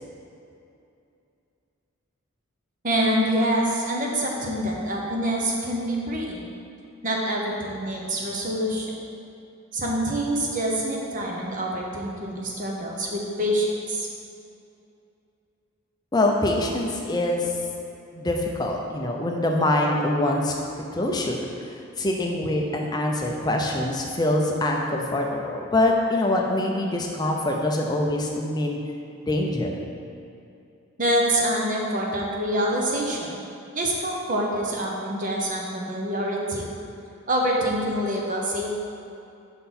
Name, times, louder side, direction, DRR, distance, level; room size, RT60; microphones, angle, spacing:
voice 1, 2.8-6.5 7.0-8.9 9.7-14.1 31.0-33.4 33.7-36.6 37.3-38.8, right 1 dB, 40° right, -2 dB, 0.9 m, -26 dB
voice 2, 16.1-17.5 18.1-20.5 20.9-21.5 22.0-28.8 29.3-29.8, left 1 dB, 20° left, 0 dB, 0.6 m, -24 dB
5.8 x 5.5 x 4.3 m, 2.6 s
head